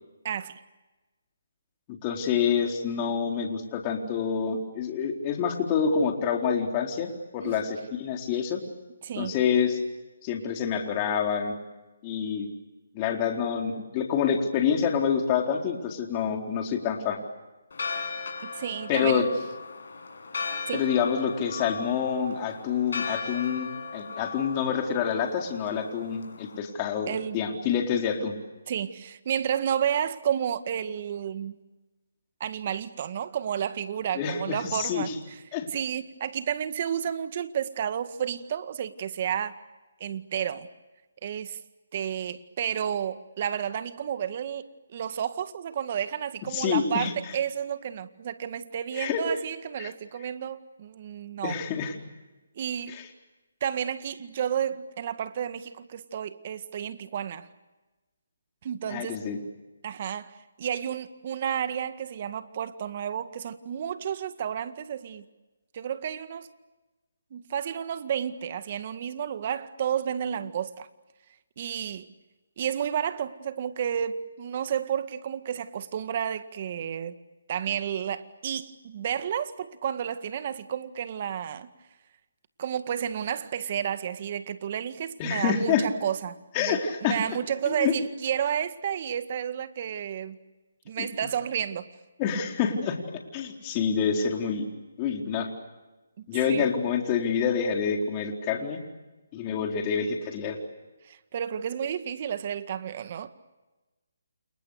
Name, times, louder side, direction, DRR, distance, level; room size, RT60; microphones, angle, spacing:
voice 1, 0.2-0.6 7.4-7.6 9.0-9.3 18.4-19.3 20.7-20.9 27.1-27.4 28.7-31.6 32.4-35.1 35.7-39.6 40.0-40.7 41.2-41.6 41.9-51.6 52.6-53.0 53.6-57.5 58.6-59.2 59.8-65.3 65.7-66.5 67.3-70.9 71.6-72.1 72.6-77.2 77.5-81.7 82.6-90.4 90.9-91.8 96.2-96.7 101.0-103.3, right 9 dB, 40° right, 11 dB, 1.9 m, -31 dB
voice 2, 1.9-8.6 9.2-9.8 10.2-11.5 12.0-12.5 12.9-17.2 18.9-19.3 20.7-28.4 34.1-35.1 35.5-35.7 46.5-47.4 48.9-49.3 49.8-49.9 51.4-52.0 52.9-53.0 58.9-59.4 85.2-85.9 86.5-87.2 87.7-87.9 91.0-91.1 92.2-93.0 93.3-94.7 95.0-95.5 96.3-98.8 99.3-100.6, left 7 dB, 25° left, 2 dB, 4.2 m, -27 dB
Church bell, 17.7-26.6, left 4 dB, 65° left, 7.3 m, -37 dB
29.5 x 29.0 x 6.6 m, 1.1 s
hypercardioid pair, 160°, 0 cm